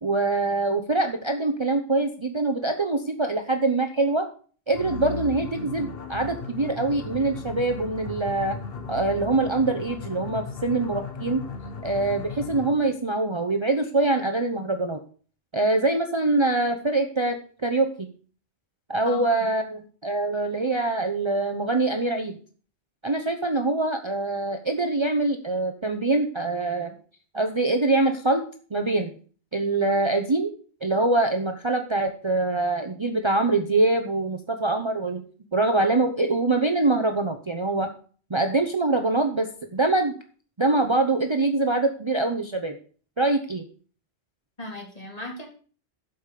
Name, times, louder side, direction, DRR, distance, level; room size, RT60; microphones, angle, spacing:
voice 1, 0.0-4.2 4.7-8.5 8.9-11.4 11.8-15.0 15.5-17.4 17.6-18.1 18.9-22.4 23.0-26.9 27.3-28.5 28.7-29.1 29.5-30.5 30.8-35.2 35.5-37.9 38.3-39.5 39.7-40.1 40.6-42.8 43.2-43.6, right 2 dB, 25° right, 5 dB, 0.9 m, -24 dB
sound 1, 4.7-13.0, left 4 dB, 60° left, 1.3 m, -36 dB
voice 2, 19.0-19.5 44.6-45.5, left 1 dB, 35° left, 0 dB, 3.3 m, -37 dB
12.5 x 5.6 x 6.6 m, 0.42 s
omnidirectional pair, 1.1 m